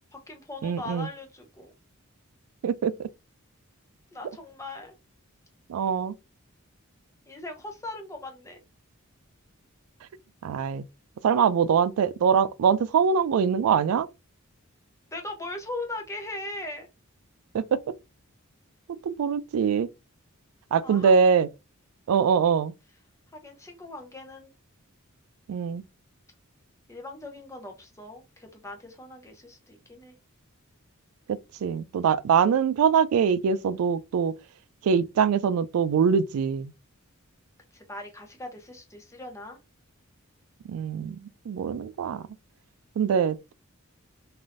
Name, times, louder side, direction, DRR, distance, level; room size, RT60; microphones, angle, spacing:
voice 1, 0.1-1.7 4.1-5.0 7.3-8.6 15.1-16.9 20.8-21.1 23.3-24.5 26.9-30.2 37.7-39.6, left 2 dB, 15° left, 0.6 m, -39 dB
voice 2, 0.6-1.1 2.6-3.1 5.7-6.2 10.4-10.8 11.2-14.1 17.5-17.8 19.0-19.9 20.7-21.5 22.1-22.7 25.5-25.8 31.6-34.3 34.8-36.7 40.7-41.2 41.5-42.2 43.0-43.5, right 6 dB, 80° right, 0.3 m, -23 dB
3.3 x 2.6 x 2.4 m
head